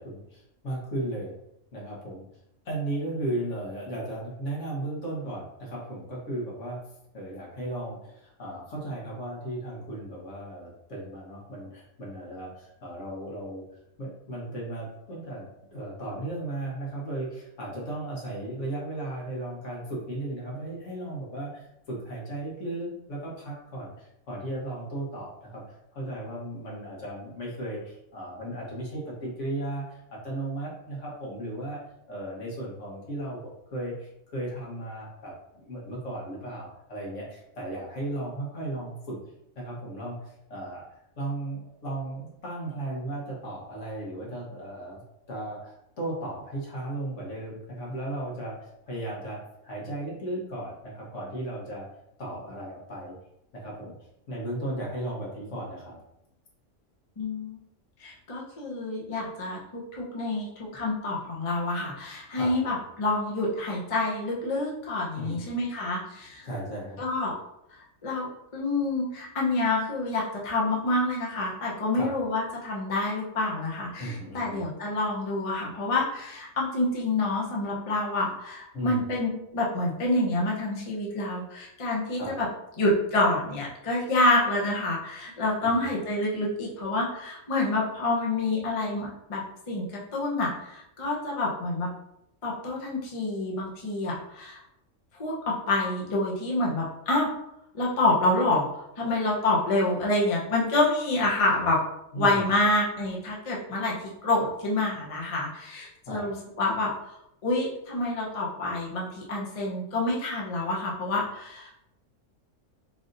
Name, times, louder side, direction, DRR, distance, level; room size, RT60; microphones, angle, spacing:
voice 1, 0.0-1.3 1.7-2.2 2.6-6.8 7.1-13.6 14.0-25.6 25.9-31.8 32.1-39.2 39.6-40.8 41.2-45.0 45.3-51.9 52.2-53.1 53.5-53.9 54.3-56.0 62.3-62.8 65.2-65.5 66.4-67.0 71.9-72.1 74.0-74.6 78.7-79.1 82.2-82.3 85.6-85.9 102.1-102.4 106.1-106.3, right 1 dB, 65° left, -4 dB, 1.5 m, -35 dB
voice 2, 57.2-57.6 58.0-66.4 67.0-67.3 68.0-82.5 82.8-89.9 90.1-91.9 92.4-94.6 95.2-97.3 97.7-101.8 102.2-106.9 107.4-111.7, left 2 dB, 35° left, -3 dB, 0.7 m, -27 dB
3.4 x 2.6 x 3.8 m, 0.80 s
omnidirectional pair, 1.4 m